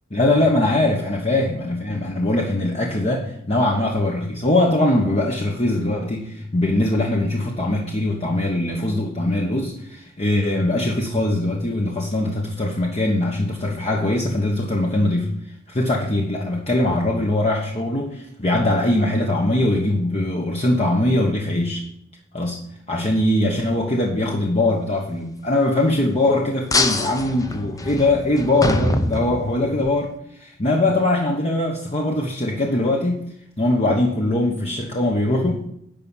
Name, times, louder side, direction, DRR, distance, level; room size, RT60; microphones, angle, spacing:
voice 1, 0.1-15.3 15.7-21.8 22.3-35.7, left 1 dB, 35° left, 0 dB, 1.2 m, -21 dB
sound 1, 26.7-29.9, left 2 dB, 20° left, 0.8 m, -24 dB
10.5 x 5.3 x 7.4 m, 0.72 s
head